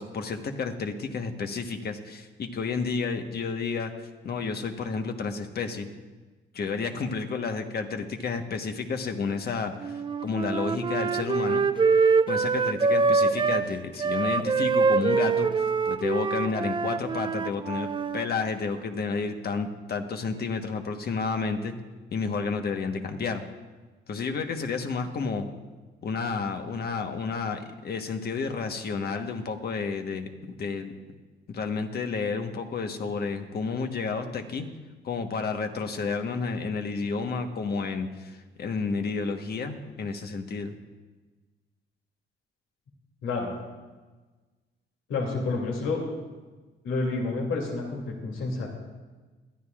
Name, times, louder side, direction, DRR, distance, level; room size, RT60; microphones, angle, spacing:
voice 1, 0.0-3.9 4.2-5.9 6.5-11.6 12.3-21.7 22.1-23.4 24.1-25.5 26.0-31.0 31.5-34.7 35.0-40.7, left 4 dB, 55° left, 5 dB, 1.2 m, -31 dB
Wind instrument woodwind instrument, 9.8-13.7 14.0-18.3, right 4 dB, 25° right, 0.5 m, -24 dB
voice 2, 45.1-46.0 46.8-48.7, left 3 dB, 80° left, 0 dB, 2.7 m, -29 dB
21.5 x 12.5 x 2.4 m, 1.3 s
cardioid pair, 90°, 20 cm